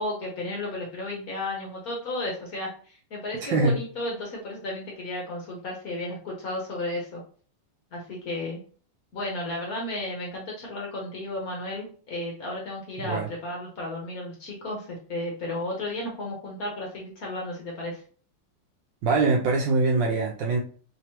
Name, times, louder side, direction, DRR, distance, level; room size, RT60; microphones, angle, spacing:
voice 1, 0.0-7.2 7.9-8.6 9.1-18.0, left 1 dB, 55° left, -2 dB, 1.1 m, -33 dB
voice 2, 3.4-3.8 13.0-13.3 19.0-20.6, right 3 dB, 75° right, 0 dB, 1.1 m, -23 dB
3.5 x 3.0 x 2.9 m, 0.42 s
omnidirectional pair, 2.4 m